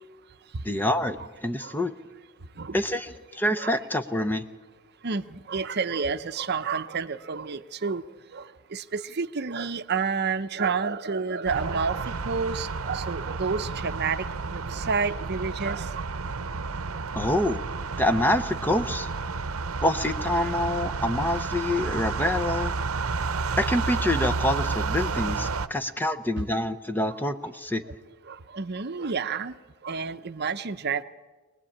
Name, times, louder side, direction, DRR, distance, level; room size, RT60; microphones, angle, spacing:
voice 1, 0.6-2.0 2.7-4.4 17.1-17.6 18.0-19.1 19.8-22.7 23.6-27.8, left 1 dB, 10° left, 8 dB, 0.7 m, -26 dB
voice 2, 5.0-8.0 8.3-14.3 14.5-16.0 16.9-17.0 17.4-17.5 26.1-26.4 27.1-27.2 28.3-29.5 29.8-31.0, right 5 dB, 50° right, 10 dB, 0.7 m, -30 dB
sound 1, 11.5-25.7, right 4 dB, 80° right, 0.8 m, -31 dB
23.5 x 20.0 x 8.6 m, 1.3 s
head